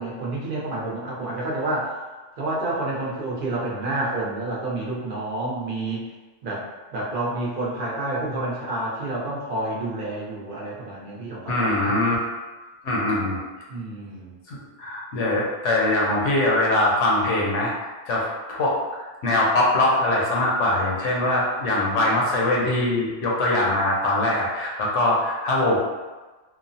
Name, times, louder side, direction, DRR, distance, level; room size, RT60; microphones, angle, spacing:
voice 1, 0.0-1.9 2.4-6.0 6.4-6.6 6.9-12.0 13.7-14.3, right 2 dB, 50° right, -5 dB, 0.8 m, -29 dB
voice 2, 11.5-12.2 12.8-13.4 14.5-17.7 18.1-25.8, left 1 dB, 75° left, -3 dB, 1.0 m, -22 dB
3.0 x 2.0 x 2.6 m, 1.2 s
omnidirectional pair, 1.3 m